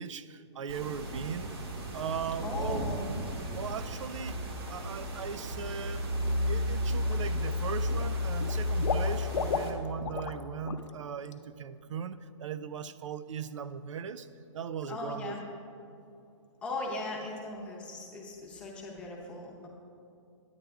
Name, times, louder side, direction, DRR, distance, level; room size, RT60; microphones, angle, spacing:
voice 1, 0.0-1.5 1.9-2.9 3.6-4.4 4.7-6.1 6.5-14.3 14.5-15.4, right 7 dB, 80° right, 14 dB, 0.4 m, -38 dB
sound 1, 0.7-9.7, left 1 dB, 55° right, 1.2 m, -33 dB
voice 2, 2.4-3.1 14.9-15.4 16.6-19.7, left 2 dB, 5° left, -3 dB, 0.7 m, -38 dB
Water / Liquid, 6.2-6.5 6.9-7.6 7.9-10.4 10.7-10.9 11.3-11.4, left 6 dB, 75° left, 0.6 m, -35 dB
9.5 x 8.7 x 3.4 m, 2.7 s
hypercardioid pair, 170°, 16 cm